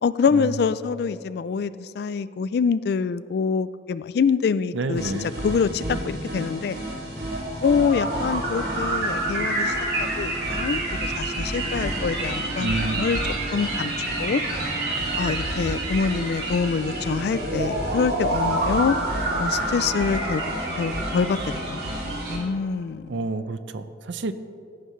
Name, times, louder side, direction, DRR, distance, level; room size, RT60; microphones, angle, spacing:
voice 1, 0.0-5.1 5.4-6.8 7.6-13.2 13.5-13.9 14.2-14.4 15.2-19.0 19.4-20.5 20.8-22.0 22.3-23.1, left 5 dB, 55° left, 16 dB, 0.3 m, -25 dB
voice 2, 4.7-5.3 12.6-13.1 23.1-24.3, right 3 dB, 80° right, 12 dB, 0.6 m, -29 dB
sound 1, 5.0-22.4, right 1 dB, 60° right, 2.5 m, -28 dB
16.5 x 9.3 x 3.1 m, 2.5 s
head